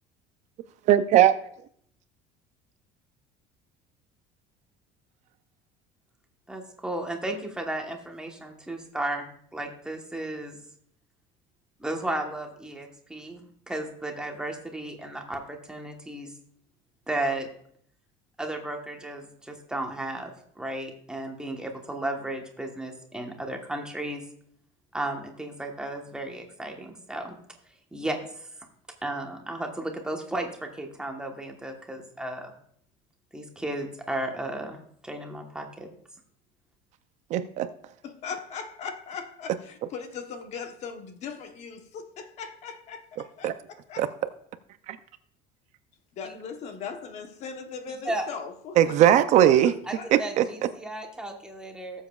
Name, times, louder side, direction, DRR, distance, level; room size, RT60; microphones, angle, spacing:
voice 1, 0.9-1.3 37.3-37.7 43.4-43.5 44.0-44.1 44.9-45.0 48.8-49.7 50.1-50.4, right 11 dB, 50° right, 0.5 m, -19 dB
voice 2, 6.5-10.6 11.8-16.3 17.1-17.5 18.4-24.2 24.9-27.4 27.9-28.5 29.0-32.5 33.3-35.9 46.3-46.4 48.0-48.3 49.8-52.1, right 1 dB, 5° right, 1.2 m, -34 dB
voice 3, 38.0-43.5 43.9-44.0 46.1-49.0 49.6-50.1, left 6 dB, 45° left, 1.0 m, -39 dB
18.0 x 7.3 x 2.3 m
cardioid pair, 165°, 16 cm